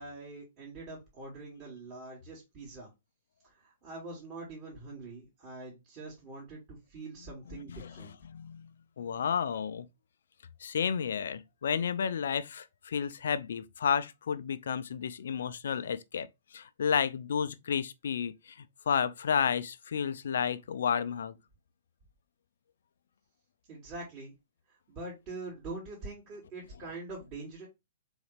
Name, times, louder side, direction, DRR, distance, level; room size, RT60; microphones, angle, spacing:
voice 1, 0.0-2.9 3.4-8.2 23.7-24.3 24.9-27.7, right 3 dB, 35° right, 2.4 m, -44 dB
voice 2, 7.5-8.7 9.0-9.9 10.6-16.3 16.5-21.4, left 7 dB, 70° left, 0.5 m, -32 dB
4.0 x 4.0 x 3.3 m
hypercardioid pair, 120°, 0 cm